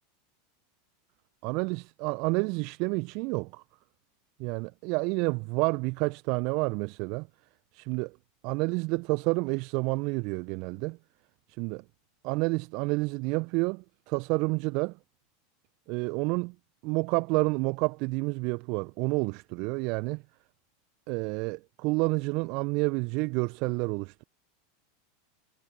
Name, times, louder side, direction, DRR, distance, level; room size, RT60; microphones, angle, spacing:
voice 1, 1.4-3.6 4.4-7.3 7.7-8.2 8.4-11.0 11.6-11.8 12.2-15.0 15.9-16.5 16.8-20.2 21.1-24.2, right 28 dB, 50° right, 1.1 m, -29 dB
figure-of-eight pair, 85°, 0 cm